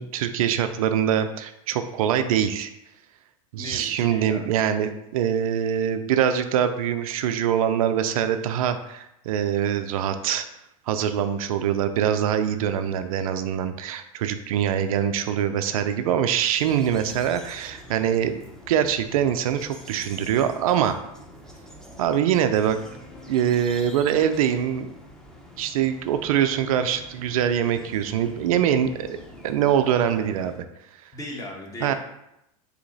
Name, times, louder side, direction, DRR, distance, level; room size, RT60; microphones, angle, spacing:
voice 1, 0.0-2.7 3.5-10.5 10.9-18.3 18.7-21.0 22.0-22.8 23.3-24.9 25.6-29.2 29.4-30.7 31.0-31.1 31.8-31.9, right 9 dB, 75° right, 9 dB, 0.4 m, -23 dB
voice 2, 3.6-4.5 31.1-31.9, left 2 dB, 20° left, 0 dB, 1.1 m, -37 dB
sound 1, 16.6-30.6, left 1 dB, 5° left, 0.7 m, -45 dB
3.9 x 2.8 x 4.0 m, 0.83 s
hypercardioid pair, 105°, 18 cm